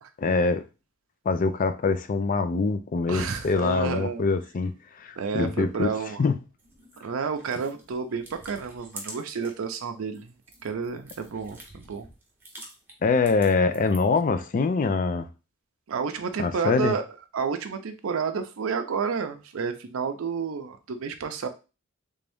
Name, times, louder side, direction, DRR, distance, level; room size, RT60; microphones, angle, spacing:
voice 1, 0.2-0.6 1.3-5.9 6.2-6.3 13.0-15.3 16.4-16.9, left 4 dB, 40° left, 0.4 m, -24 dB
voice 2, 3.1-4.2 5.2-6.2 7.0-10.3 10.6-12.1 15.9-17.0 17.3-21.5, right 5 dB, 75° right, 0.5 m, -30 dB
sound 1, 6.6-9.7 10.0-14.2, right 2 dB, 10° right, 0.8 m, -47 dB
3.4 x 2.6 x 3.4 m
head